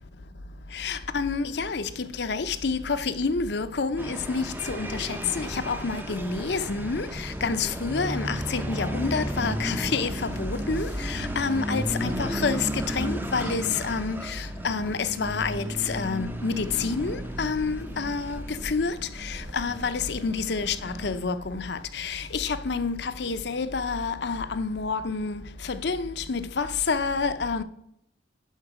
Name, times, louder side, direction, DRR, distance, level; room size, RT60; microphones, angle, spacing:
voice 1, 0.7-27.6, left 4 dB, 60° left, 0.6 m, -29 dB
sound 1, 4.0-21.2, equal, 10° right, 0.6 m, -34 dB
11.0 x 5.5 x 4.9 m
head